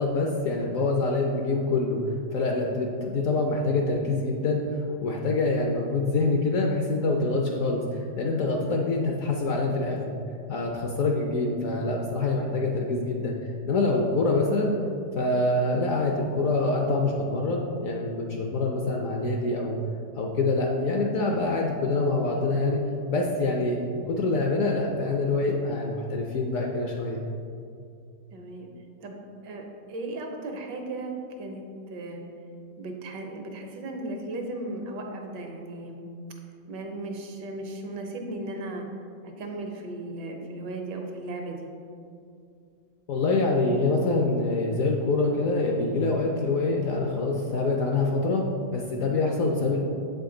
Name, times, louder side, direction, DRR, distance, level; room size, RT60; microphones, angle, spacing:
voice 1, 0.0-2.0 2.3-4.6 5.0-10.2 10.5-13.3 13.7-14.7 15.2-19.8 20.2-22.8 23.1-27.2 43.1-49.8, left 3 dB, 65° left, 0 dB, 0.8 m, -25 dB
voice 2, 28.3-28.7 29.0-32.2 32.8-36.0 36.7-38.9 39.2-41.7, right 2 dB, 80° right, 2 dB, 1.5 m, -36 dB
7.5 x 5.2 x 3.7 m, 2.5 s
omnidirectional pair, 1.9 m